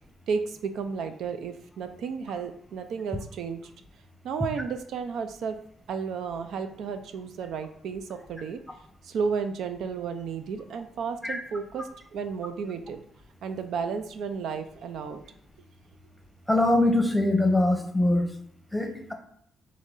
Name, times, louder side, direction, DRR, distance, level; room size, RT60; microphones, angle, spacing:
voice 1, 0.3-3.6 4.2-5.6 5.9-8.6 9.0-13.0 13.4-15.2, right 6 dB, 75° right, 8 dB, 0.4 m, -33 dB
voice 2, 16.5-18.3 18.7-19.1, left 1 dB, ahead, 3 dB, 0.8 m, -23 dB
3.6 x 3.2 x 3.7 m, 0.68 s
cardioid pair, 90°, 0 cm